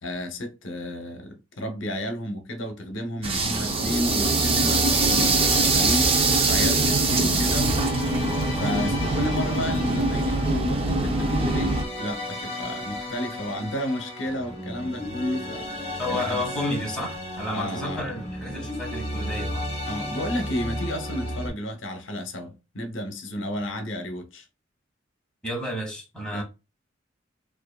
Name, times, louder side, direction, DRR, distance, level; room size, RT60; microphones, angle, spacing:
voice 1, 0.0-6.2 6.4-8.0 8.6-15.7 16.1-16.4 17.5-18.1 19.9-24.5 26.3-26.4, equal, 75° left, 0.8 m, -32 dB
sound 1, 3.2-11.8, right 3 dB, 30° right, 0.5 m, -23 dB
sound 2, 3.4-21.5, left 1 dB, 35° left, 1.9 m, -33 dB
voice 2, 16.0-19.7 25.4-26.4, left 1 dB, 5° left, 1.2 m, -31 dB
4.5 x 2.5 x 2.2 m
head